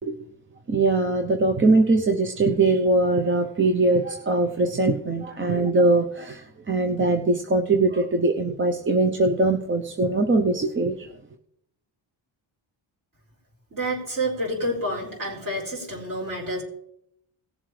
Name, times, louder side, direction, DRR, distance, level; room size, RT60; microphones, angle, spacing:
voice 1, 0.7-11.1, right 2 dB, 25° right, 3 dB, 0.7 m, -21 dB
voice 2, 13.7-16.6, right 1 dB, 45° right, -2 dB, 4.1 m, -28 dB
18.0 x 7.3 x 3.3 m, 0.74 s
cardioid pair, 130°, 47 cm